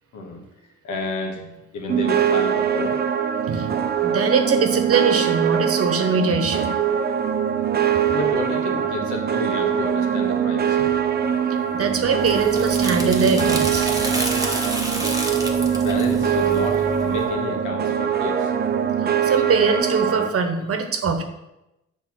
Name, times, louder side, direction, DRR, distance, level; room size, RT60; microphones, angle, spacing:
voice 1, 0.1-0.4 0.8-1.4 1.7-3.0 8.1-10.9 15.6-18.5, left 2 dB, 75° left, 1 dB, 1.5 m, -30 dB
sound 1, 1.9-20.3, right 8 dB, 35° right, 0.6 m, -22 dB
voice 2, 4.0-6.7 11.7-13.9 19.2-21.2, right 5 dB, 50° right, 6 dB, 1.1 m, -22 dB
sound 2, 11.8-17.3, right 1 dB, 10° right, 1.2 m, -29 dB
6.9 x 3.4 x 6.1 m, 0.91 s
cardioid pair, 90°, 30 cm